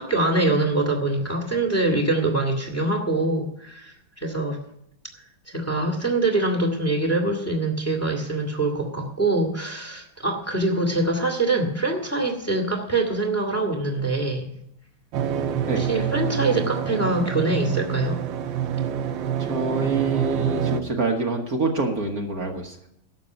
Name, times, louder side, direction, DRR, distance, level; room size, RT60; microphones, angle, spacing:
voice 1, 0.0-4.6 5.5-14.5 15.8-18.2, right 2 dB, 10° left, 2 dB, 1.8 m, -24 dB
sound 1, 15.1-20.8, right 8 dB, 75° right, 1.6 m, -26 dB
voice 2, 19.4-22.8, right 3 dB, 50° right, 2 dB, 1.6 m, -26 dB
12.0 x 6.8 x 9.1 m, 0.75 s
omnidirectional pair, 2.2 m